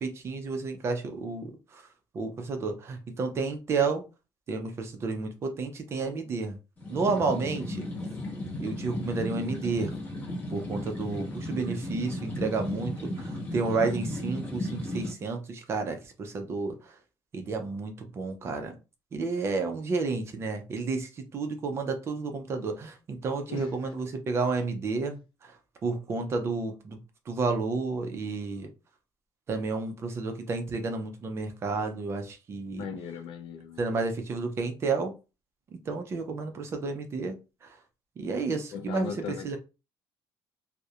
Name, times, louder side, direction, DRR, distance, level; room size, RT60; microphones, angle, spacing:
voice 1, 0.0-1.8 2.1-4.0 4.5-6.6 6.9-7.8 8.6-9.9 10.5-16.9 17.3-18.7 19.1-25.6 25.8-27.0 27.3-28.7 29.5-32.8 33.8-35.1 35.7-37.4 37.6-37.8 38.2-39.1 39.4-39.6, right 4 dB, 30° right, 0.4 m, -31 dB
sound 1, 6.8-15.1, left 1 dB, 20° left, 0.6 m, -35 dB
voice 2, 23.5-23.9 32.7-34.0 38.7-39.6, left 6 dB, 65° left, 0.4 m, -39 dB
2.3 x 2.0 x 2.7 m
cardioid pair, 180°, 9 cm